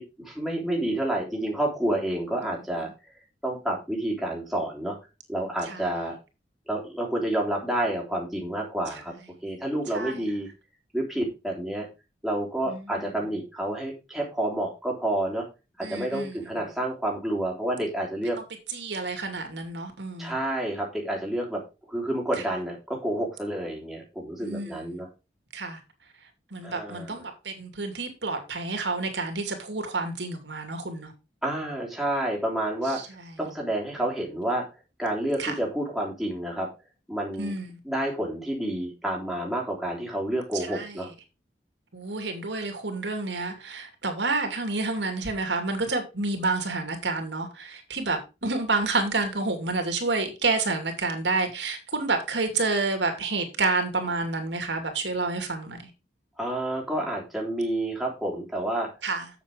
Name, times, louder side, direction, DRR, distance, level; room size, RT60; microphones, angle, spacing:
voice 1, 0.0-2.9 3.4-4.9 5.3-6.1 6.7-9.1 9.4-10.5 10.9-11.9 12.2-15.4 15.8-18.4 20.2-21.6 21.9-25.1 26.6-27.2 31.4-33.0 33.4-34.6 35.0-36.7 37.1-37.5 37.8-41.1 56.4-58.9, right 1 dB, ahead, 3.3 m, -29 dB
voice 2, 12.7-13.1 15.8-16.4 18.7-20.3 24.4-25.0 25.5-25.8 26.5-31.1 32.9-33.3 35.4-35.5 37.4-37.8 40.7-41.1 41.9-55.9 59.0-59.3, right 3 dB, 85° right, 2.6 m, -29 dB
8.0 x 7.3 x 5.1 m
head